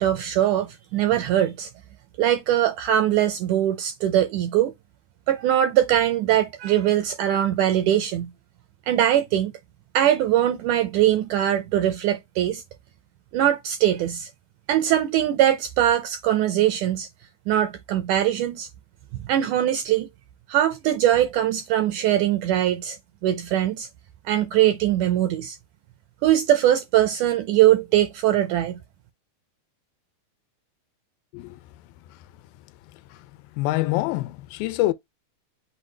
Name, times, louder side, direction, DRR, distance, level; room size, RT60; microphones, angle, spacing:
voice 1, 0.0-1.7 2.2-4.7 5.3-8.3 8.9-9.5 9.9-12.6 13.3-14.3 14.7-17.1 17.5-18.7 19.3-20.1 20.5-23.0 23.2-23.9 24.3-25.6 26.2-28.8, right 12 dB, 80° right, 1.8 m, -21 dB
voice 2, 32.9-34.9, left 17 dB, 85° left, 2.3 m, -27 dB
6.3 x 2.3 x 3.2 m
omnidirectional pair, 4.1 m